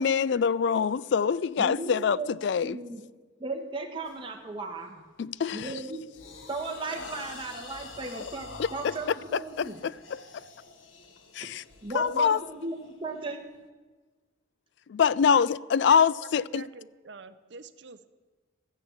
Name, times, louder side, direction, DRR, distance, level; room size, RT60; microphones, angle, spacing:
voice 1, 0.0-2.2 2.4-2.8 5.2-5.7 8.8-8.9 9.3-10.2 11.3-11.6 11.9-12.4 14.9-16.6, left 7 dB, 60° left, 0.3 m, -25 dB
voice 2, 1.6-2.3 2.6-3.1 3.4-5.0 5.5-6.0 6.5-9.8 11.4-11.5 11.8-13.4, right 3 dB, 25° right, 1.5 m, -36 dB
sound 1, 4.0-4.3 4.8-5.1 5.5-13.6, left 3 dB, 75° left, 1.3 m, -47 dB
voice 3, 15.9-18.1, right 4 dB, 60° right, 0.7 m, -46 dB
14.0 x 10.0 x 7.3 m
head